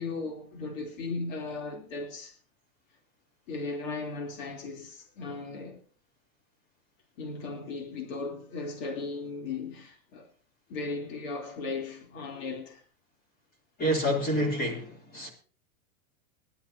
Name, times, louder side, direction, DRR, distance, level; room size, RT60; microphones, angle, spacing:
voice 1, 0.0-2.4 3.5-5.8 7.2-10.3 10.7-12.8, left 3 dB, 60° left, 3.2 m, -36 dB
voice 2, 13.8-15.3, equal, 20° left, 2.9 m, -28 dB
20.5 x 12.0 x 2.7 m
supercardioid pair, 160°, 45 cm